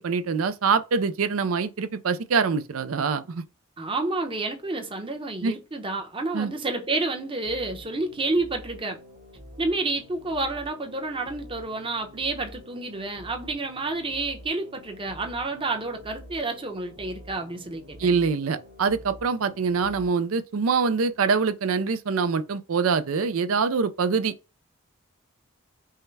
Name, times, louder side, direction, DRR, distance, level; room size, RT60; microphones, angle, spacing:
voice 1, 0.0-3.4 5.4-5.6 6.3-6.5 18.0-24.3, right 5 dB, 80° right, 0.5 m, -24 dB
voice 2, 3.8-9.0 9.6-18.2, right 2 dB, 25° right, 0.8 m, -30 dB
sound 1, 6.5-20.1, equal, 55° right, 1.9 m, -47 dB
5.5 x 2.2 x 3.3 m
head